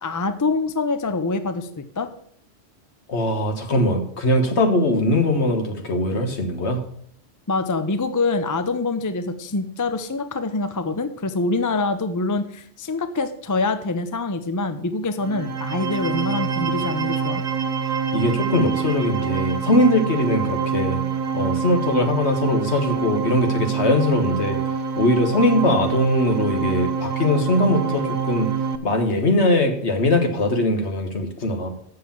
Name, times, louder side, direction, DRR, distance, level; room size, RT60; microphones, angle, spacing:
voice 1, 0.0-2.1 7.5-17.4, left 3 dB, 25° left, 10 dB, 0.4 m, -25 dB
voice 2, 3.1-6.8 17.9-21.0 21.3-24.6 25.0-28.5 28.8-31.7, left 1 dB, 60° left, 5 dB, 1.6 m, -21 dB
sound 1, 15.2-28.8, right 6 dB, 45° right, 0.7 m, -25 dB
7.5 x 6.6 x 7.2 m, 0.65 s
omnidirectional pair, 1.3 m